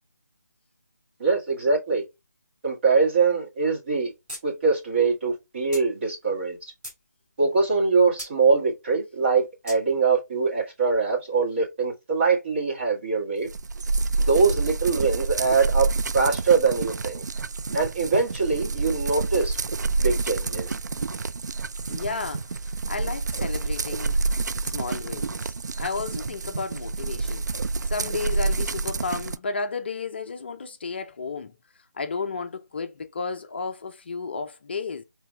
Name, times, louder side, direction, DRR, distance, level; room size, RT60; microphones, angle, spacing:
voice 1, 1.2-2.0 2.6-4.1 4.4-6.6 7.4-13.5 14.3-17.2 17.7-19.6 20.0-20.7, right 4 dB, 40° right, 1.7 m, -23 dB
sound 1, 4.3-4.4 4.7-4.8 5.7-5.9 6.5-7.0 8.2-8.3 9.7-9.8, equal, 5° right, 1.4 m, -38 dB
sound 2, 13.5-29.4, right 3 dB, 70° right, 0.3 m, -28 dB
voice 2, 21.8-24.2 24.6-27.4 27.8-31.5 31.9-35.0, left 4 dB, 35° left, 0.4 m, -33 dB
5.0 x 3.3 x 2.2 m
figure-of-eight pair, 160°, 10 cm